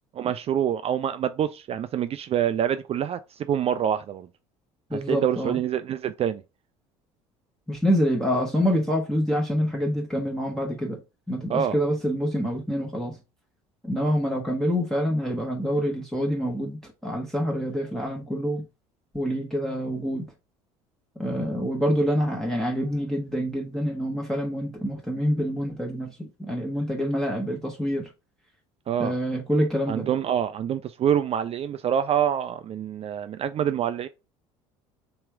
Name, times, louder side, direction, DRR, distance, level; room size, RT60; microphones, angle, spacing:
voice 1, 0.2-4.3 4.9-6.4 11.5-11.8 28.9-29.1 29.9-34.1, right 9 dB, 40° right, 0.4 m, -26 dB
voice 2, 4.9-5.6 7.7-11.0 11.3-13.2 13.8-18.6 19.1-20.3 21.2-28.1 29.0-30.1, equal, 5° left, 1.2 m, -26 dB
3.5 x 3.0 x 4.4 m
hypercardioid pair, 75°, 16 cm